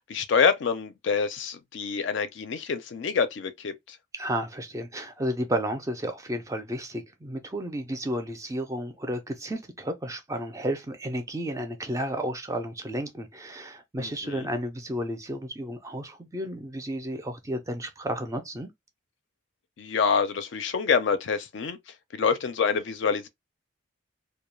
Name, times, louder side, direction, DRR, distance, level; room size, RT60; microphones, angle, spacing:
voice 1, 0.1-4.0 14.0-14.5 19.8-21.8 22.1-23.3, left 5 dB, 60° left, 0.4 m, -26 dB
voice 2, 4.1-18.7, equal, 15° right, 0.4 m, -32 dB
2.3 x 2.1 x 3.0 m
head